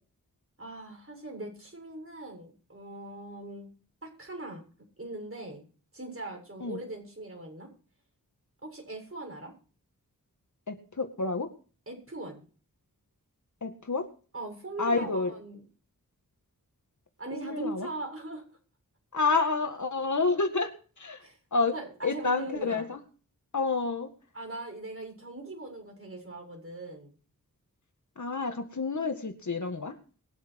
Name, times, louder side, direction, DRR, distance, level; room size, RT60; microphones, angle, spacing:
voice 1, 0.6-3.7 4.0-4.6 5.0-5.6 5.9-7.7 8.6-9.5 11.9-12.4 14.3-15.6 17.2-18.4 21.2-21.4 21.7-22.9 24.3-27.1, right 2 dB, 40° right, 2 dB, 7.3 m, -40 dB
voice 2, 10.7-11.5 13.6-14.1 14.8-15.3 17.3-17.9 19.1-20.7 21.0-21.2 21.5-21.7 22.0-23.0 23.5-24.1 28.2-29.9, left 4 dB, 55° left, 6 dB, 2.0 m, -29 dB
21.0 x 8.1 x 4.7 m, 0.39 s
cardioid pair, 55°, 34 cm